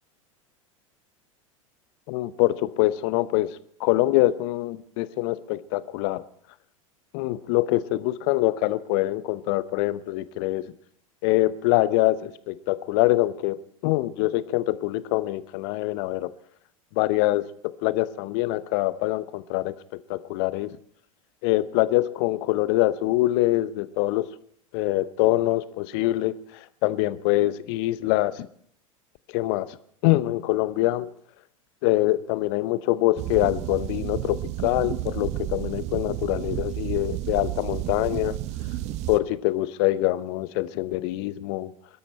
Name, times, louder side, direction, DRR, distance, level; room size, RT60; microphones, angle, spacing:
voice 1, 2.1-3.5 3.8-6.2 7.1-10.7 11.2-13.6 13.8-16.3 17.0-19.7 20.1-20.8 21.4-24.3 24.7-26.3 26.8-28.5 29.3-29.7 30.0-31.1 31.8-38.4 39.1-41.7, left 17 dB, 50° left, 16 dB, 0.8 m, -24 dB
sound 1, 33.2-39.2, right 15 dB, 40° right, 0.8 m, -31 dB
22.5 x 12.5 x 4.3 m, 0.64 s
figure-of-eight pair, 85°, 18 cm